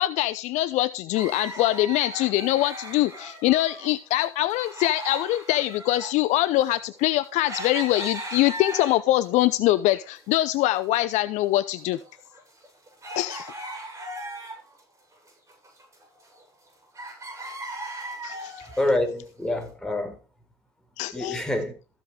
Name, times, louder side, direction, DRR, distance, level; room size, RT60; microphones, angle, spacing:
voice 1, 0.0-12.0 13.2-13.5 18.2-18.5 21.0-21.4, left 15 dB, 60° left, 0.6 m, -23 dB
sound 1, 1.1-3.9 4.2-9.3 9.7-10.6 10.9-11.0 11.6-14.8 15.1-16.7 16.9-18.9 19.5-19.6, right 1 dB, 20° right, 7.5 m, -38 dB
voice 2, 18.8-20.2 21.1-21.8, left 1 dB, 5° left, 4.5 m, -26 dB
15.0 x 8.1 x 3.6 m
hypercardioid pair, 65°, 14 cm